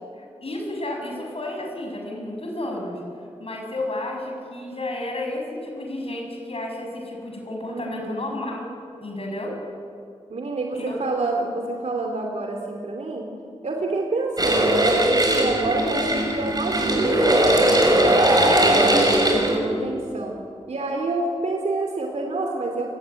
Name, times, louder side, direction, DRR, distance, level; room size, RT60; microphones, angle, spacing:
voice 1, 0.2-3.0 3.4-8.7 9.0-9.6 10.7-11.0, left 1 dB, 55° left, 1 dB, 7.0 m, -32 dB
voice 2, 7.7-8.3 10.3-13.3 13.6-18.1 18.6-20.4 20.7-22.9, right 2 dB, 75° right, 2 dB, 2.8 m, -28 dB
sound 1, 14.4-19.5, right 1 dB, 35° right, 6.1 m, -19 dB
30.0 x 15.5 x 9.5 m, 2.5 s
cardioid pair, 60°, 12 cm